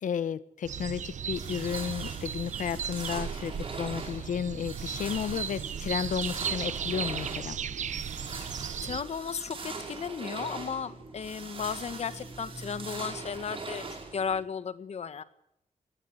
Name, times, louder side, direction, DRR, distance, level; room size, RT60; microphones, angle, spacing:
voice 1, 0.0-7.6, left 8 dB, 85° left, 1.0 m, -33 dB
sound 1, 0.6-9.0, right 8 dB, 70° right, 1.1 m, -36 dB
sound 2, 1.2-14.4, right 4 dB, 45° right, 5.9 m, -42 dB
sound 3, 8.2-14.4, right 1 dB, 10° right, 6.0 m, -51 dB
voice 2, 8.4-13.8 14.1-15.2, left 6 dB, 55° left, 1.6 m, -35 dB
21.5 x 18.0 x 8.0 m
wide cardioid pair, 130°, 13 cm